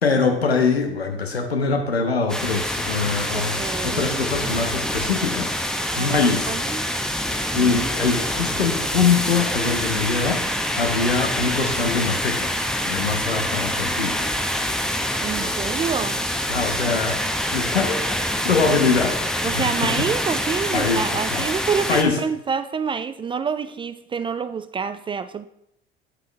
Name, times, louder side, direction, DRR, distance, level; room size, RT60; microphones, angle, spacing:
voice 1, 0.0-5.5 6.0-6.5 7.5-10.5 10.7-12.5 12.9-14.2 15.4-15.5 16.5-17.2 17.5-18.2 18.4-19.9 20.7-21.0 21.3-21.5 21.9-22.2, left 4 dB, 90° left, 1.1 m, -23 dB
sound 1, 2.3-22.0, equal, ahead, 1.0 m, -25 dB
voice 2, 3.3-4.3 5.9-6.8 7.6-7.9 15.2-16.3 19.4-25.5, right 6 dB, 20° right, 0.3 m, -27 dB
8.4 x 8.2 x 3.2 m
hypercardioid pair, 70°, 30 cm